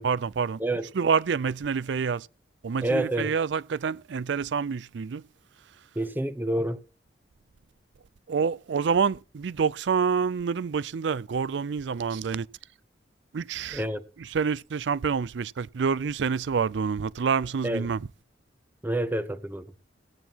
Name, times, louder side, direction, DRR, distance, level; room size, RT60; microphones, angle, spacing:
voice 1, 0.0-0.6 0.9-2.3 2.6-5.3 8.3-12.5 13.3-13.8 14.2-18.1, right 6 dB, 75° right, 0.4 m, -27 dB
voice 2, 2.8-3.3 6.0-6.8 13.7-14.0 17.6-17.9 18.8-19.6, right 1 dB, 10° right, 0.8 m, -28 dB
17.0 x 9.2 x 2.9 m
head